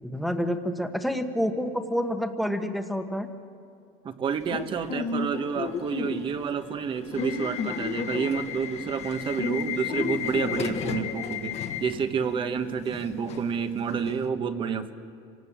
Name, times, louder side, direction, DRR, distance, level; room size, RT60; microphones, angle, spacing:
voice 1, 0.0-3.3, equal, ahead, 7 dB, 1.3 m, -28 dB
voice 2, 4.0-14.9, right 6 dB, 30° right, 10 dB, 1.2 m, -29 dB
Subway metro underground / Alarm, 4.4-14.2, left 6 dB, 40° left, 1.5 m, -33 dB
27.0 x 18.5 x 7.4 m, 2.4 s
cardioid pair, 145°, 16 cm